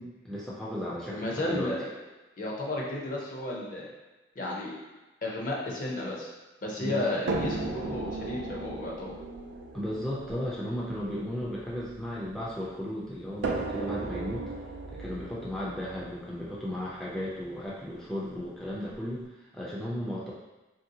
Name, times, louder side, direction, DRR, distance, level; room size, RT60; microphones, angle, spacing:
voice 1, 0.0-1.7 6.8-7.1 9.7-14.5 14.9-20.3, equal, 5° left, -7 dB, 0.3 m, -35 dB
voice 2, 1.1-1.9 2.4-3.9 4.4-4.7 5.2-6.3 6.6-9.1, left 1 dB, 45° left, -3 dB, 0.6 m, -33 dB
sound 1, 7.3-12.5 13.4-17.4 18.4-18.5 18.9-19.0, right 3 dB, 80° right, 0.3 m, -36 dB
3.1 x 2.6 x 2.7 m, 1.1 s
head